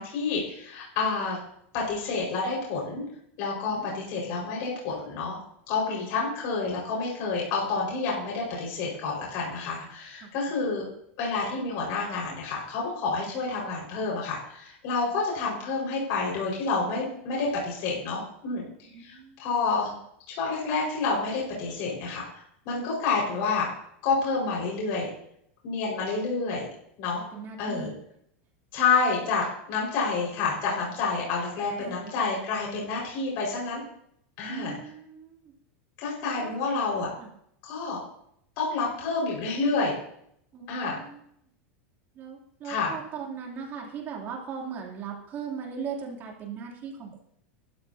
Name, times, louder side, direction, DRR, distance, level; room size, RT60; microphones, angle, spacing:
voice 1, 0.0-1.4 1.7-3.0 3.4-5.4 5.7-10.8 11.2-18.7 19.0-19.9 20.3-22.2 22.6-23.7 24.0-25.1 25.6-26.7 27.0-27.2 27.6-27.9 28.7-33.8 34.4-34.7 36.0-37.1 37.6-38.0 38.6-40.0 40.7-41.0 42.6-42.9, left 4 dB, 50° left, -4 dB, 5.1 m, -29 dB
voice 2, 10.2-10.6 18.9-19.4 27.1-27.9 31.8-32.0 34.5-35.5 36.2-36.5 37.2-37.3 40.5-41.2 42.1-47.2, right 6 dB, 30° right, -1 dB, 3.0 m, -39 dB
19.5 x 12.0 x 2.8 m, 0.71 s
supercardioid pair, 155°, 7 cm